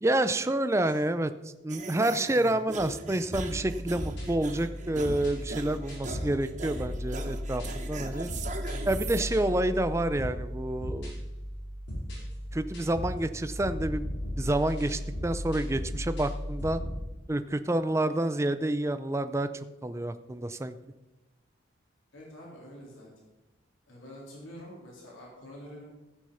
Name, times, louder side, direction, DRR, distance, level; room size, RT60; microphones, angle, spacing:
voice 1, 0.0-8.3 8.9-11.2 12.5-14.1 14.4-16.8 17.3-19.5 19.8-20.8, right 1 dB, 15° right, 11 dB, 0.4 m, -28 dB
sound 1, 1.7-9.2, right 3 dB, 40° right, 0.9 m, -40 dB
sound 2, 3.3-17.0, equal, 60° left, 5.1 m, -36 dB
voice 2, 22.1-23.1 23.9-25.9, equal, 85° left, -4 dB, 3.7 m, -47 dB
15.5 x 6.3 x 5.7 m, 1.1 s
head